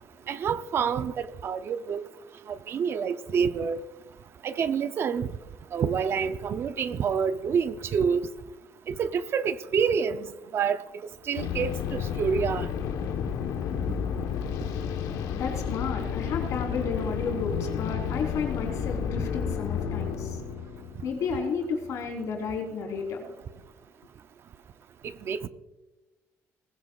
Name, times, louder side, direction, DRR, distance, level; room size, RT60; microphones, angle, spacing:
voice 1, 0.3-2.0 2.5-3.8 4.4-5.3 5.7-8.3 8.9-10.8 11.3-12.7 25.2-25.5, right 6 dB, 45° right, 0.6 m, -27 dB
sound 1, 11.4-22.1, left 8 dB, 85° left, 1.2 m, -31 dB
voice 2, 15.3-20.4 21.0-23.3, left 5 dB, 60° left, 3.7 m, -32 dB
20.0 x 16.0 x 2.4 m
cardioid pair, 145°, 6 cm